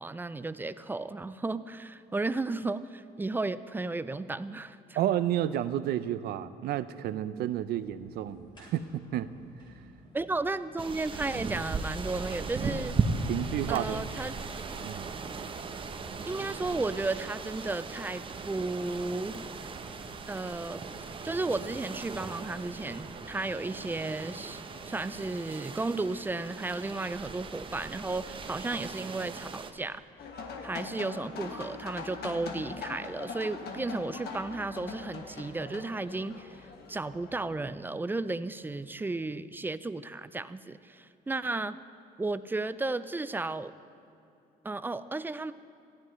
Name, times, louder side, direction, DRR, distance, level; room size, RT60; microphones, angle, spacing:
voice 1, 0.0-4.8 10.1-13.0 13.7-14.3 16.3-19.5 20.3-20.8 21.2-24.6 24.9-30.0 30.6-41.8 42.2-43.7 44.6-45.5, right 2 dB, 10° right, 14 dB, 0.4 m, -34 dB
voice 2, 4.9-9.3 13.3-14.0 14.8-15.1, right 11 dB, 70° right, 14 dB, 0.5 m, -31 dB
sound 1, 7.6-25.3, left 1 dB, 25° left, 3.2 m, -55 dB
sound 2, 10.8-29.7, right 4 dB, 30° right, 0.8 m, -37 dB
sound 3, 30.2-37.4, left 4 dB, 70° left, 1.6 m, -42 dB
19.0 x 14.5 x 3.1 m, 2.7 s
cardioid pair, 110°, 17 cm